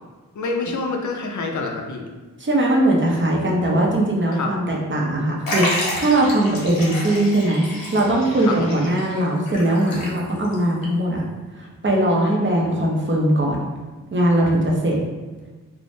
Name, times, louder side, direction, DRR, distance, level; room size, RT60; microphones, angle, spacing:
voice 1, 0.4-2.0 4.3-4.5 8.4-8.7 10.0-10.1, left 3 dB, 60° left, 2 dB, 0.5 m, -27 dB
voice 2, 2.4-11.2 11.5-13.6 14.1-15.0, right 1 dB, 35° right, -2 dB, 0.6 m, -20 dB
Liquid, 5.5-10.5 10.8-10.9 11.9-12.0, left 1 dB, 80° left, 0.8 m, -29 dB
3.3 x 2.0 x 2.6 m, 1.3 s
wide cardioid pair, 120°, 34 cm